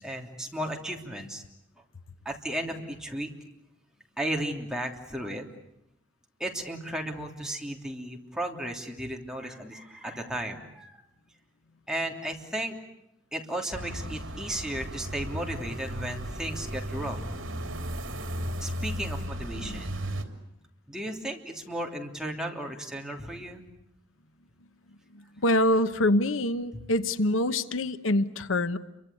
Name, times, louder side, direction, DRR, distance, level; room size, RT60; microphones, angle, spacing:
voice 1, 0.0-1.4 2.2-3.3 4.2-5.5 6.4-11.0 11.9-12.8 13.3-17.4 18.6-20.0 20.9-23.6, right 1 dB, 5° right, 1 dB, 3.1 m, -35 dB
sound 1, 13.7-20.2, equal, 75° right, 3.1 m, -35 dB
voice 2, 25.1-28.8, left 1 dB, 85° left, 12 dB, 1.1 m, -25 dB
29.5 x 24.0 x 8.5 m, 0.82 s
head